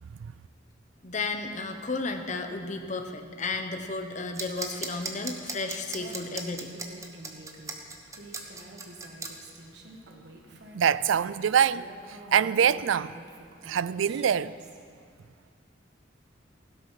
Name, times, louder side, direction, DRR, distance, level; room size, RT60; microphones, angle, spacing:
voice 1, 1.0-6.7, left 3 dB, 40° left, 0.9 m, -33 dB
sound 1, 4.3-9.3, right 3 dB, 15° right, 1.1 m, -36 dB
Female speech woman speaking, 5.9-14.8, right 1 dB, 60° right, 1.5 m, -48 dB
voice 2, 10.7-13.1 13.6-14.5, right 8 dB, 80° right, 0.4 m, -25 dB
16.0 x 12.0 x 5.8 m
head